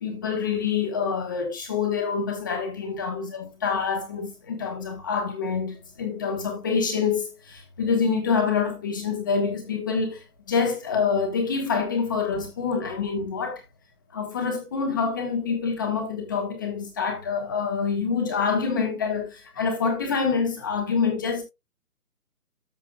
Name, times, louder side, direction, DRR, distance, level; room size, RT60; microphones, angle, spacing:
voice 1, 0.0-13.6 14.1-21.4, left 5 dB, 15° left, 1.2 m, -26 dB
13.5 x 5.5 x 2.3 m
hypercardioid pair, 175°, 46 cm